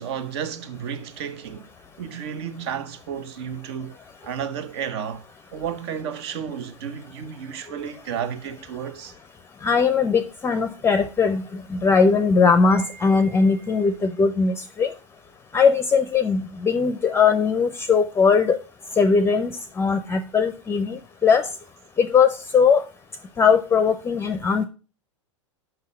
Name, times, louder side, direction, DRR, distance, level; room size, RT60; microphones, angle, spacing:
voice 1, 0.0-1.7 2.0-5.2 5.5-9.2, right 8 dB, 55° right, 0.9 m, -32 dB
voice 2, 9.6-11.4 11.7-14.9 15.5-18.6 19.0-19.5 19.8-21.5 22.0-22.8 23.4-24.6, left 5 dB, 15° left, 0.6 m, -19 dB
5.7 x 5.6 x 6.8 m
figure-of-eight pair, 95°, 16 cm